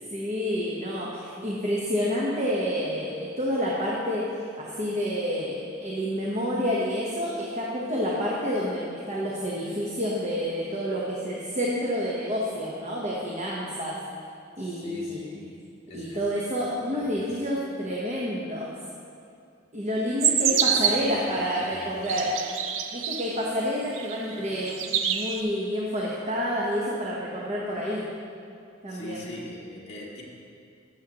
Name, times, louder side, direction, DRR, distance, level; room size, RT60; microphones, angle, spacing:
voice 1, 0.1-4.2 4.6-14.0 14.6-15.2 15.9-18.7 19.7-22.4 22.9-24.7 25.0-28.0 28.8-29.3, equal, 35° right, -5 dB, 1.0 m, -29 dB
voice 2, 14.6-15.5 15.9-16.2 16.9-17.4 20.2-20.3 20.6-22.1 28.9-30.2, left 1 dB, 35° left, -5 dB, 1.9 m, -42 dB
sound 1, 20.2-21.1 21.8-23.4 23.9-24.4 24.7-25.4, right 8 dB, 75° right, 0.5 m, -26 dB
13.5 x 7.5 x 2.9 m, 2.4 s
head